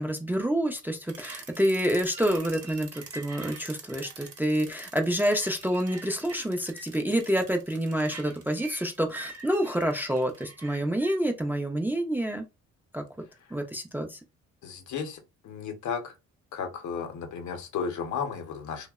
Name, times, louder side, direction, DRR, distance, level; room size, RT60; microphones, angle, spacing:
voice 1, 0.0-12.5 12.9-13.0 13.5-14.2, equal, 5° right, 0.3 m, -28 dB
sound 1, 1.1-11.2, right 4 dB, 55° right, 0.8 m, -45 dB
voice 2, 14.6-16.1 16.5-18.9, left 6 dB, 75° left, 0.7 m, -34 dB
2.7 x 2.0 x 2.2 m
cardioid pair, 90°, 30 cm